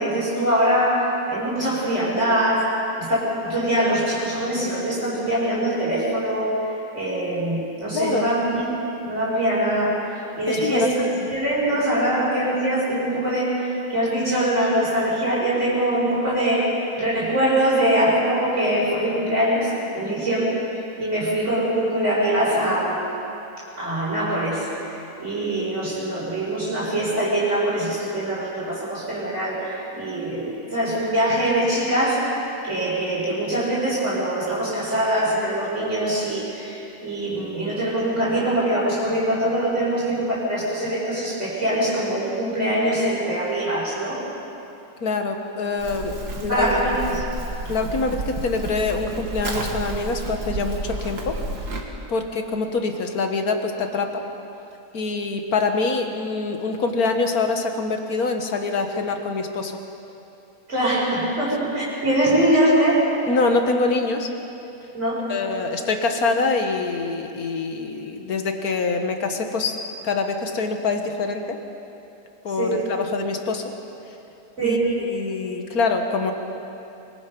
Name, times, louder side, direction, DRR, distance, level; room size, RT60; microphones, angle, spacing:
voice 1, 0.0-2.7 3.0-8.6 9.0-11.0 11.3-20.4 21.0-23.0 23.8-44.2 46.3-47.2 60.7-63.1 64.9-65.2 72.6-72.8 74.6-74.9, right 1 dB, 45° right, -8 dB, 5.6 m, -23 dB
voice 2, 7.9-8.3 10.5-11.3 20.0-20.3 45.0-46.7 47.7-51.4 52.1-54.2 54.9-59.7 63.3-64.3 65.3-69.8 70.0-71.6 72.4-73.6 74.6-76.3, left 3 dB, 65° left, 5 dB, 2.0 m, -25 dB
Livestock farm animals working animals, 45.8-51.8, right 2 dB, 80° right, 2.6 m, -31 dB
25.5 x 23.0 x 5.4 m, 2.8 s
omnidirectional pair, 1.7 m